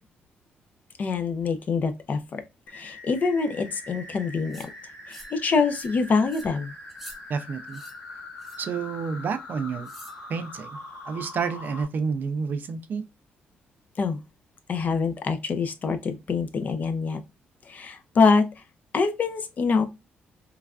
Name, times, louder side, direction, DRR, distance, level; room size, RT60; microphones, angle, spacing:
voice 1, 1.0-2.4 2.7-4.7 5.1-6.7 14.0-14.2 14.7-17.2 17.7-18.4 18.9-19.9, left 4 dB, 45° left, 0.5 m, -25 dB
sound 1, 2.7-11.8, left 2 dB, 90° left, 1.3 m, -42 dB
sound 2, 4.5-4.7 5.1-5.4 5.7-6.0 6.3-6.5 6.9-7.2 7.7-8.0 8.4-8.7 9.8-10.2, right 1 dB, ahead, 0.7 m, -47 dB
voice 2, 7.3-7.8 8.6-9.9 10.3-10.8 11.0-13.0, right 5 dB, 55° right, 0.4 m, -29 dB
3.2 x 2.3 x 2.3 m
cardioid pair, 105°, 4 cm